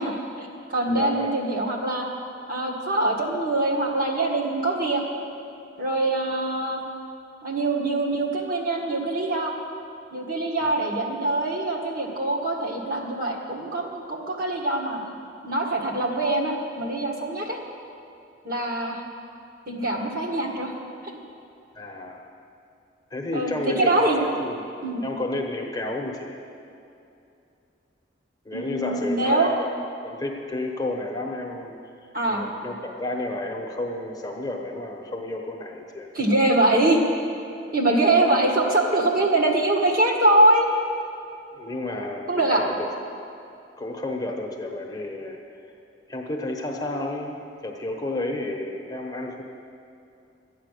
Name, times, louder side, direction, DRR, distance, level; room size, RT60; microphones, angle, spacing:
voice 1, 0.0-2.1 2.5-5.0 5.8-6.8 7.4-9.5 10.1-15.0 15.4-17.6 18.4-19.0 19.7-20.7 21.0-21.1 23.3-24.2 24.8-25.0 28.5-29.5 32.1-32.5 36.1-37.0 37.7-40.7 42.3-42.6, right 2 dB, 50° right, -1 dB, 1.7 m, -23 dB
voice 2, 0.9-1.3 10.6-10.7 21.7-22.2 23.1-24.7 25.0-26.4 28.4-29.7 30.0-31.7 32.3-36.1 38.2-38.3 41.5-42.9 43.8-45.4 46.1-49.4, left 2 dB, 20° left, 1 dB, 1.0 m, -31 dB
13.0 x 9.2 x 6.6 m, 2.7 s
head